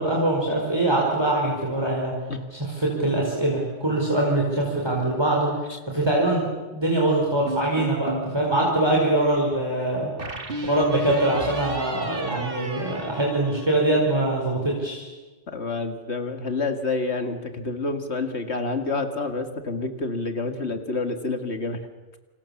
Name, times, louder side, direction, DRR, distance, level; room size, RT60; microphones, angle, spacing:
voice 1, 0.0-2.1 2.6-6.5 6.7-10.1 10.6-15.1, right 1 dB, 20° right, -2 dB, 5.1 m, -23 dB
sound 1, 7.5-8.4 10.2-14.0, right 1 dB, 55° right, 2.7 m, -33 dB
voice 2, 15.5-21.8, left 3 dB, 75° left, 7 dB, 2.3 m, -28 dB
29.5 x 27.0 x 7.2 m, 1.2 s
omnidirectional pair, 1.2 m